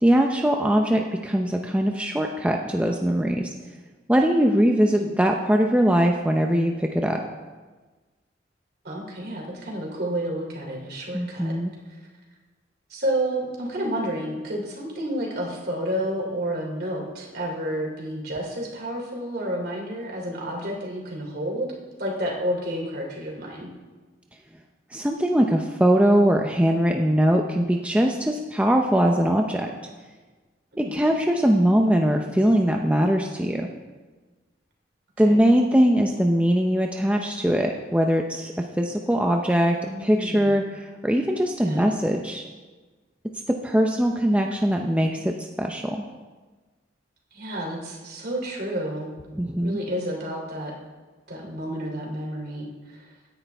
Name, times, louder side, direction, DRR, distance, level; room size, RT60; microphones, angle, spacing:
voice 1, 0.0-3.5 4.1-7.2 11.1-11.7 24.9-29.7 30.9-33.7 35.2-42.4 43.5-46.0 49.3-49.8, equal, 5° right, 2 dB, 0.6 m, -21 dB
voice 2, 8.8-11.5 12.9-21.7 22.0-23.7 30.7-30.9 35.2-35.4 39.8-40.5 41.6-41.9 47.3-49.1 49.6-50.7 51.3-53.1, right 1 dB, 55° right, -1 dB, 3.0 m, -30 dB
17.0 x 10.0 x 3.5 m, 1.3 s
head